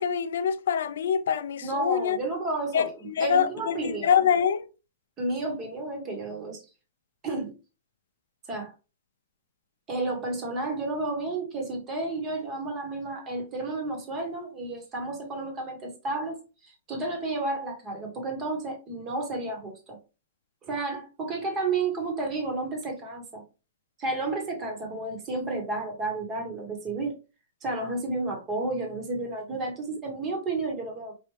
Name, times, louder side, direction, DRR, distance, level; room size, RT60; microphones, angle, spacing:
voice 1, 0.0-2.2 2.7-2.9 3.2-4.6, left 7 dB, 70° left, 0.4 m, -24 dB
voice 2, 1.6-4.2 5.2-6.6 7.2-7.5 8.5-8.7 9.9-20.0 20.6-23.4 24.0-27.2 27.6-31.1, right 2 dB, 20° right, 1.2 m, -31 dB
4.7 x 2.4 x 3.1 m
hypercardioid pair, 160°, 0 cm